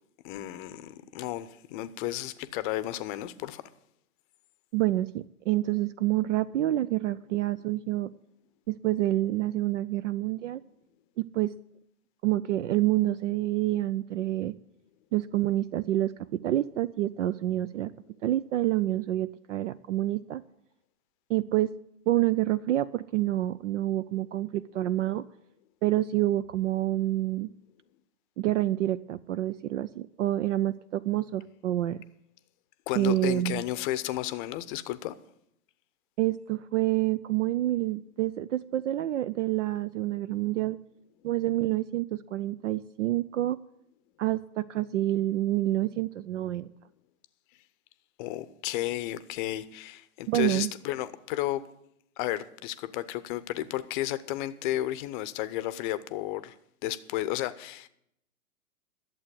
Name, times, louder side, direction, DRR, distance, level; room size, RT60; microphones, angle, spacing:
voice 1, 0.2-3.6 32.9-35.1 48.2-51.6 52.2-56.5 56.8-57.9, left 14 dB, 35° left, 0.7 m, -33 dB
voice 2, 4.7-8.1 8.7-10.6 11.2-11.5 12.2-14.5 15.1-17.9 18.2-20.4 21.3-21.7 22.1-25.2 25.8-27.5 28.4-32.0 32.9-33.6 36.2-40.8 41.2-43.6 44.2-46.7 50.3-50.7, right 15 dB, 55° right, 0.5 m, -28 dB
11.5 x 7.6 x 8.3 m
hypercardioid pair, 120°, 45 cm